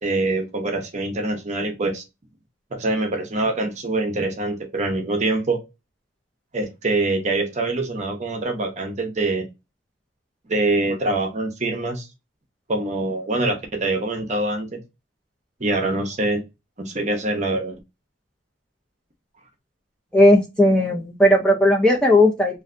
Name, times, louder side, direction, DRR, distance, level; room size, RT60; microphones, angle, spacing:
voice 1, 0.0-2.0 2.7-5.6 6.5-9.5 10.5-12.1 12.7-14.8 15.6-16.4 16.8-17.8, right 2 dB, 35° right, 4 dB, 0.7 m, -24 dB
voice 2, 20.1-22.6, left 1 dB, 5° left, -1 dB, 0.5 m, -16 dB
3.1 x 2.5 x 2.4 m, 0.23 s
head